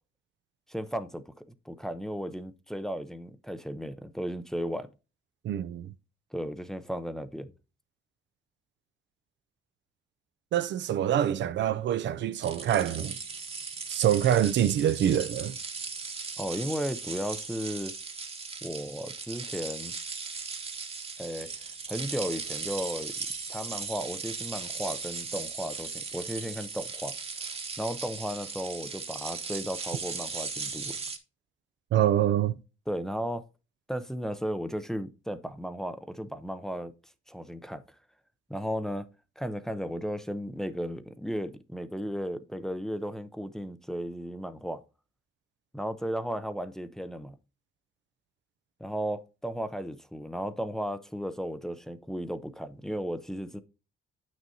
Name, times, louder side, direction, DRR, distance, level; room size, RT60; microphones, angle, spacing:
voice 1, 0.7-1.3 1.7-4.9 6.3-7.5 16.4-17.9 18.6-20.0 21.2-21.5 21.9-23.1 23.5-27.1 27.8-31.0 32.9-33.4 33.9-36.9 37.3-37.8 38.5-39.1 39.4-44.8 45.7-47.4 48.8-53.6, equal, ahead, 0.6 m, -35 dB
voice 2, 5.4-5.9 10.5-13.2 13.9-15.6 31.9-32.6, right 11 dB, 65° right, 0.5 m, -25 dB
sound 1, 12.4-31.2, right 4 dB, 30° right, 1.1 m, -38 dB
8.8 x 6.3 x 2.7 m
cardioid pair, 90°, 20 cm